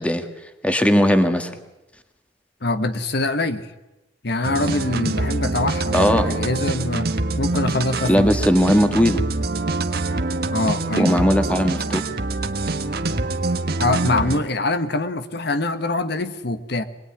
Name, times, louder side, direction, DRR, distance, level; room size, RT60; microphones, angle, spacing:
voice 1, 0.0-1.6 5.9-6.3 8.0-9.2 11.0-12.0, equal, 5° left, 7 dB, 1.8 m, -19 dB
voice 2, 2.6-3.7 4.2-7.1 7.4-8.3 10.5-11.2 13.8-16.8, left 2 dB, 60° left, 10 dB, 1.3 m, -24 dB
sound 1, 4.4-14.4, right 2 dB, 55° right, 1.5 m, -25 dB
24.0 x 20.5 x 10.0 m, 1.0 s
head